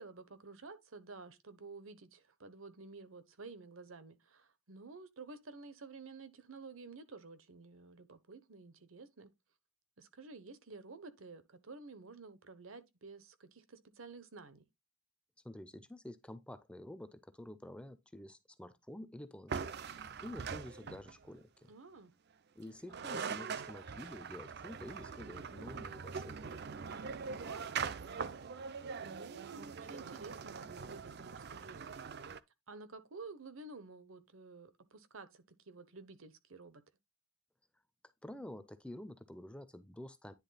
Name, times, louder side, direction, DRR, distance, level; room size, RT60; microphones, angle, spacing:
voice 1, 0.0-9.3 10.0-14.6 21.7-22.1 27.2-28.4 29.0-31.9 32.7-36.8, right 3 dB, 70° right, 1.0 m, -52 dB
voice 2, 15.4-21.7 22.6-26.6 38.2-40.3, left 1 dB, 5° left, 0.5 m, -49 dB
sound 1, 19.5-21.3 22.6-22.7 22.9-32.4, right 6 dB, 50° right, 0.5 m, -42 dB
10.0 x 3.6 x 4.0 m
head